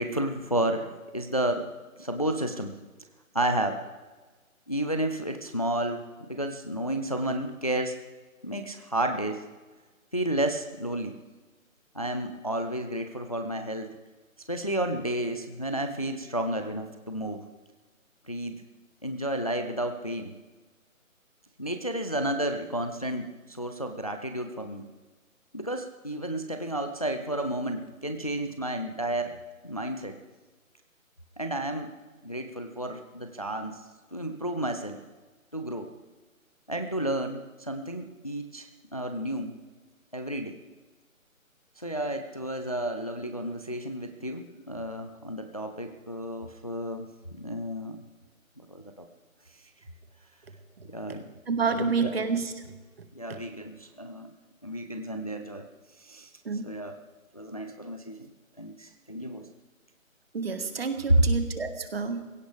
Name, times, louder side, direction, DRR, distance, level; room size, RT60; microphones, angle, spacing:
voice 1, 0.0-1.7 2.0-2.7 3.3-3.8 4.7-8.0 8.4-9.5 10.1-11.2 11.9-14.0 14.5-17.4 18.3-18.6 19.0-20.3 21.6-24.9 25.5-29.4 29.6-30.2 31.4-31.9 32.2-33.8 34.1-35.0 35.5-35.9 36.7-39.5 40.1-40.6 41.8-48.0 48.7-49.1 50.8-51.3 51.8-52.1 53.1-54.3 54.6-55.7 56.0-56.3 56.6-57.0 57.3-58.3 58.6-59.5 61.2-61.3, right 1 dB, 25° left, 6 dB, 0.5 m, -31 dB
voice 2, 51.5-52.5 53.3-53.4 56.4-56.7 60.3-62.2, right 5 dB, 45° right, 8 dB, 1.6 m, -29 dB
20.0 x 16.5 x 3.4 m, 1.3 s
figure-of-eight pair, 165°, 42 cm